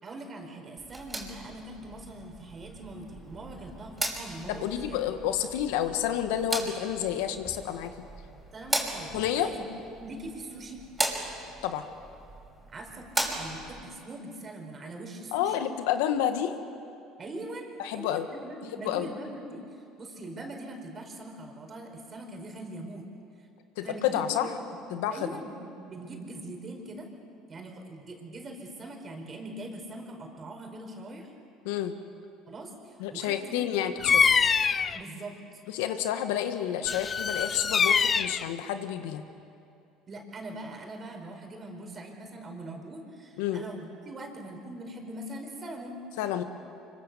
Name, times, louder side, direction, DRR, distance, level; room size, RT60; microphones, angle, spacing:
voice 1, 0.0-5.0 8.5-9.6 10.0-10.8 12.7-15.6 17.2-23.0 23.4-23.5 23.8-24.8 25.1-27.1 27.5-31.3 32.5-34.0 34.9-35.6 40.1-46.0, right 1 dB, 35° right, 3 dB, 4.9 m, -42 dB
sound 1, 0.8-13.8, right 2 dB, 15° right, 5.7 m, -37 dB
voice 2, 4.5-7.9 9.1-9.5 11.6-11.8 15.3-16.5 17.8-18.3 18.8-19.1 23.8-24.5 24.9-25.3 31.6-31.9 33.0-34.2 35.7-39.2 43.4-43.6 46.2-46.4, left 10 dB, 85° left, 8 dB, 1.6 m, -29 dB
Bird vocalization bird call bird song, 34.0-35.0 36.8-38.5, left 6 dB, 35° left, 0.7 m, -24 dB
24.5 x 24.0 x 7.0 m, 2.6 s
supercardioid pair, 85°, 0 cm